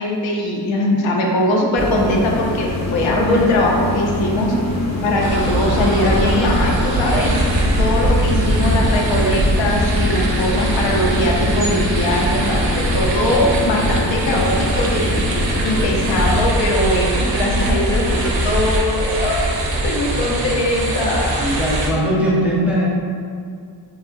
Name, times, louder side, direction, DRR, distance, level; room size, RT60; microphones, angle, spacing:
voice 1, 0.0-4.6 5.0-7.3 7.8-15.1 15.6-19.4 19.8-21.4, left 1 dB, 85° left, -1 dB, 0.6 m, -20 dB
sound 1, 1.8-16.5, left 1 dB, 40° left, 0.6 m, -24 dB
sound 2, 5.2-21.9, right 1 dB, 80° right, 0.5 m, -21 dB
voice 2, 21.4-22.9, equal, 5° right, -6 dB, 0.5 m, -20 dB
2.8 x 2.4 x 2.5 m, 2.2 s
cardioid pair, 70°, 44 cm